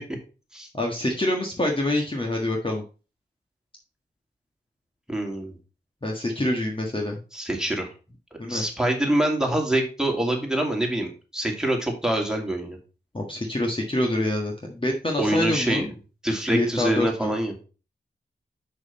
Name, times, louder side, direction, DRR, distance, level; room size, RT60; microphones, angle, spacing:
voice 1, 0.7-2.8 6.0-7.2 8.4-8.6 13.1-15.9 16.5-17.3, left 1 dB, 30° left, 1 dB, 1.5 m, -26 dB
voice 2, 5.1-5.5 7.3-7.9 8.5-12.8 15.2-15.9 16.2-17.5, right 1 dB, 5° right, 1 dB, 2.5 m, -25 dB
6.1 x 5.6 x 4.2 m, 0.34 s
cardioid pair, 55°, 18 cm